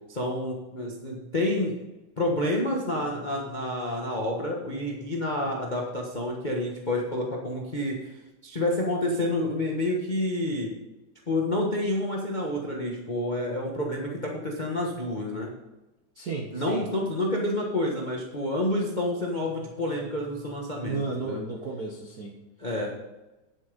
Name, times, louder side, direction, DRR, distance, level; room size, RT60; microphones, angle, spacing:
voice 1, 0.1-1.8 2.2-10.7 11.3-15.5 16.5-21.4 22.6-22.9, left 1 dB, 60° left, -1 dB, 0.4 m, -29 dB
voice 2, 16.2-16.8 20.8-22.3, right 4 dB, 70° right, 1 dB, 0.9 m, -33 dB
10.0 x 8.0 x 5.2 m, 1.1 s
omnidirectional pair, 3.3 m